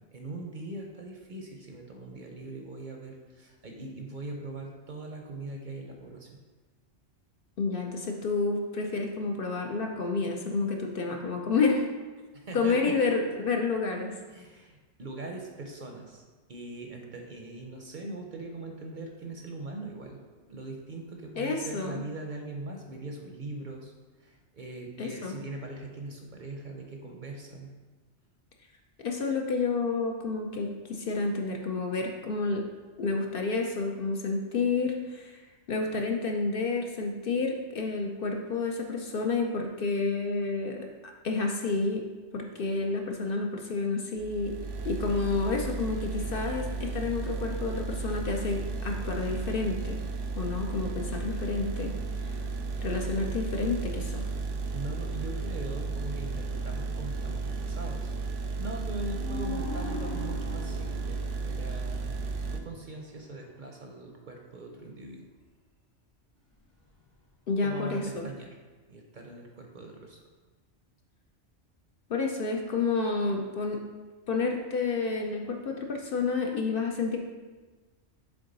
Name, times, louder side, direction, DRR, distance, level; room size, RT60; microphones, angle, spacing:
voice 1, 0.1-6.4 12.3-12.9 14.3-16.2 16.5-20.2 20.5-23.9 24.2-27.7 54.7-62.2 62.5-65.3 67.6-68.5 68.9-70.2, right 2 dB, 50° right, 2 dB, 0.7 m, -41 dB
voice 2, 7.6-11.9 12.5-14.1 21.4-22.0 25.0-25.3 29.0-32.7 33.0-35.4 35.7-40.9 41.2-42.0 42.3-44.5 44.8-50.0 50.4-51.9 52.2-52.4 52.8-54.3 67.5-68.3 72.1-73.8 74.3-77.2, left 4 dB, 60° left, 2 dB, 0.7 m, -30 dB
sound 1, 44.2-62.6, right 4 dB, 85° right, 0.9 m, -34 dB
sound 2, 54.8-56.4 58.8-58.9 59.1-63.6 66.7-67.3 68.0-68.3, left 1 dB, 80° left, 2.4 m, -43 dB
7.0 x 3.7 x 3.9 m, 1.3 s
omnidirectional pair, 1.2 m